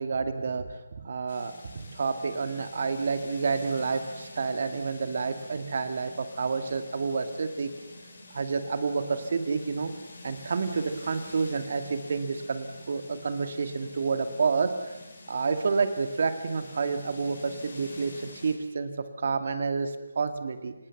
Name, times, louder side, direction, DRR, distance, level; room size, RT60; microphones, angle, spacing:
voice 1, 0.0-7.7 8.3-9.9 10.2-14.7 15.3-18.9 19.2-20.8, right 4 dB, 45° right, 9 dB, 2.1 m, -29 dB
sound 1, 1.3-18.6, left 2 dB, 50° left, 7.0 m, -48 dB
25.5 x 20.0 x 7.3 m, 1.1 s
hypercardioid pair, 170°, 0 cm